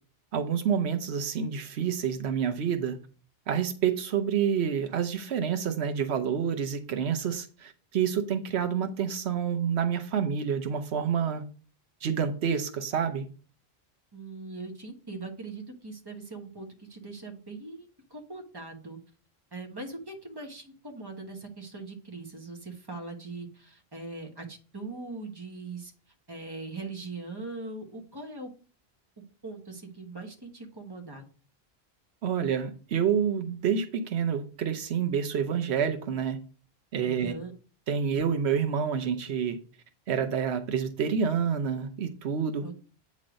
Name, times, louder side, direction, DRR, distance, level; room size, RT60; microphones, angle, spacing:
voice 1, 0.3-3.0 3.5-11.4 12.0-13.3 32.2-36.4 36.9-37.3 37.9-39.6 40.1-42.6, right 7 dB, 90° right, 7 dB, 1.0 m, -28 dB
voice 2, 14.1-19.0 19.5-25.9 26.3-28.5 29.4-31.2 37.0-37.5 42.6-42.9, right 3 dB, 25° right, 2 dB, 1.3 m, -41 dB
8.6 x 3.2 x 5.1 m, 0.39 s
omnidirectional pair, 1.1 m